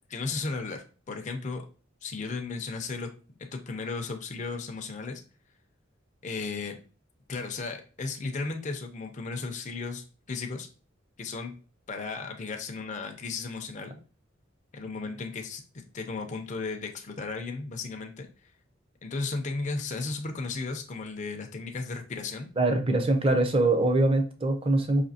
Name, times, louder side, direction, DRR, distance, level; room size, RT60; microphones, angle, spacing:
voice 1, 0.1-1.7 2.0-3.1 3.5-5.2 6.2-6.8 7.3-10.7 11.2-11.5 11.9-14.0 14.7-18.3 19.0-22.5, left 4 dB, 40° left, 4 dB, 0.5 m, -35 dB
voice 2, 22.6-25.1, right 2 dB, 30° right, 6 dB, 0.6 m, -23 dB
4.9 x 2.7 x 2.7 m, 0.36 s
head